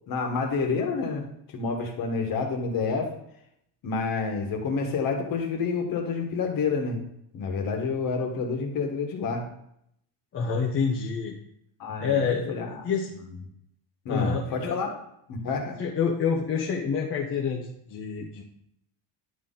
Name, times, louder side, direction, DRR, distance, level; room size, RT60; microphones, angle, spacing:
voice 1, 0.1-3.1 3.8-7.0 7.3-9.4 11.8-12.9 14.0-14.9 15.3-15.8, left 4 dB, 45° left, 2 dB, 1.5 m, -29 dB
voice 2, 10.3-11.4 12.0-12.6 12.8-13.1 14.1-14.8 15.8-18.4, left 6 dB, 25° left, -2 dB, 0.7 m, -27 dB
10.5 x 4.2 x 3.8 m, 0.74 s
cardioid pair, 180°, 46 cm